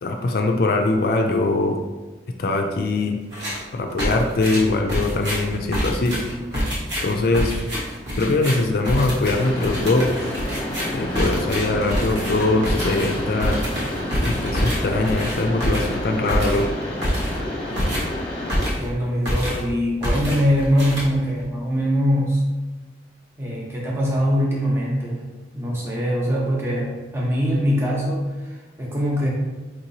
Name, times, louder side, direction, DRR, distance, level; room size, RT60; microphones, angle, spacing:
voice 1, 0.0-1.8 2.4-3.2 3.7-6.2 7.0-7.6 8.1-10.1 10.9-13.6 14.2-16.7, left 2 dB, 55° left, 4 dB, 0.4 m, -22 dB
sound 1, 3.3-3.7 4.0-19.0 19.3-19.7 20.0-21.4, equal, 70° right, 1.1 m, -26 dB
Mechanisms, 9.2-18.7, left 1 dB, 30° left, 0.9 m, -30 dB
voice 2, 18.8-22.4 23.4-25.2 25.5-29.3, equal, 15° right, -5 dB, 0.8 m, -22 dB
4.6 x 2.9 x 2.7 m, 1.2 s
head